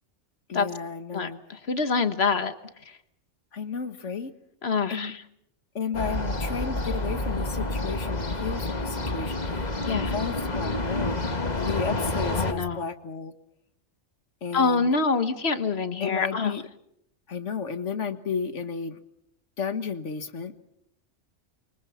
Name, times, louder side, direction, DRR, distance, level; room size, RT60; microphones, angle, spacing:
voice 1, 0.5-1.4 3.5-4.3 4.9-5.2 5.8-13.3 14.4-14.9 16.0-16.6 17.3-19.0 19.6-20.6, left 6 dB, 75° left, 10 dB, 1.9 m, -33 dB
voice 2, 1.1-2.5 2.9-3.0 4.6-5.2 9.9-10.1 12.4-12.8 14.5-16.5, left 4 dB, 60° left, 11 dB, 1.6 m, -26 dB
sound 1, 5.9-12.5, left 2 dB, 35° left, 1.9 m, -29 dB
29.0 x 24.0 x 5.8 m, 0.75 s
omnidirectional pair, 1.2 m